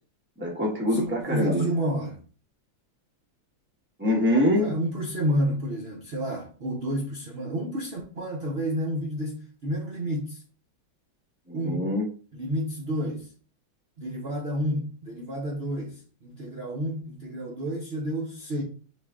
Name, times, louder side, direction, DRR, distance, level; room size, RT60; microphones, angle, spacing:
voice 1, 0.4-1.6 4.0-4.7 11.5-12.1, left 1 dB, 10° right, 0.6 m, -24 dB
voice 2, 0.9-2.2 4.6-10.4 11.5-11.9 12.3-13.3 14.0-18.6, equal, 80° right, 0.5 m, -30 dB
5.8 x 2.5 x 3.5 m
omnidirectional pair, 2.2 m